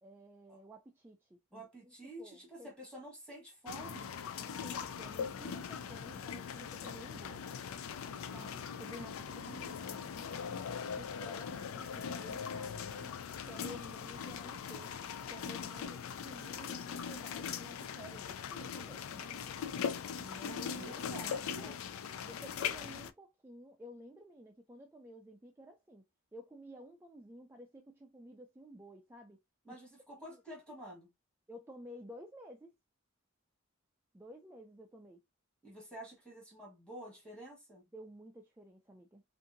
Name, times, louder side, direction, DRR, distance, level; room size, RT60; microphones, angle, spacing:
voice 1, 0.0-2.7 4.3-7.5 8.3-9.1 11.0-13.2 13.5-14.9 15.3-19.6 20.3-21.0 21.6-21.8 22.2-26.0 26.3-29.4 29.7-29.8 30.3-30.4 31.5-32.7 34.1-35.2 37.9-39.2, equal, 10° right, 0.3 m, -53 dB
voice 2, 1.5-4.1 8.8-10.1 20.1-21.8 29.6-31.1 35.6-37.9, right 1 dB, 5° left, 1.3 m, -50 dB
sound 1, 3.7-23.1, left 7 dB, 85° left, 0.4 m, -41 dB
2.7 x 2.5 x 2.5 m
head